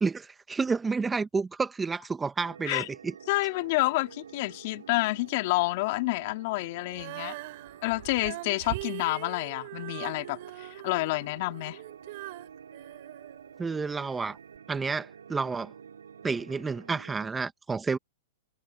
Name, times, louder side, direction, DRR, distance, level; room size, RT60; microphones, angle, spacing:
voice 1, 0.0-3.1 13.6-14.4 14.7-15.7 16.2-18.0, right 4 dB, 10° right, 1.4 m, -30 dB
sound 1, 2.4-17.3, right 7 dB, 85° right, 5.9 m, -49 dB
voice 2, 3.3-7.4 7.8-11.8, left 22 dB, 55° left, 3.1 m, -29 dB
Female singing, 6.9-13.9 14.6-14.7, right 21 dB, 55° right, 7.8 m, -42 dB
hypercardioid pair, 120°, 0 cm